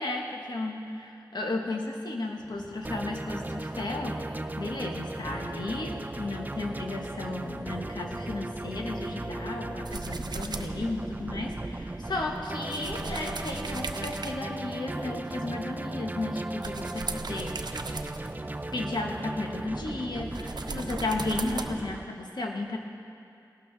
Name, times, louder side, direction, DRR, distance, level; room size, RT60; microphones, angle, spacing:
voice 1, 0.0-17.5 18.7-22.8, left 2 dB, 70° left, 1 dB, 1.4 m, -34 dB
sound 1, 2.4-21.9, left 1 dB, 90° left, 3.0 m, -52 dB
sound 2, 2.8-22.0, right 2 dB, 25° right, 0.5 m, -37 dB
sound 3, 9.8-19.7 20.2-21.7, right 3 dB, 70° right, 0.6 m, -40 dB
18.0 x 12.5 x 3.4 m, 2.5 s
cardioid pair, 45°, 8 cm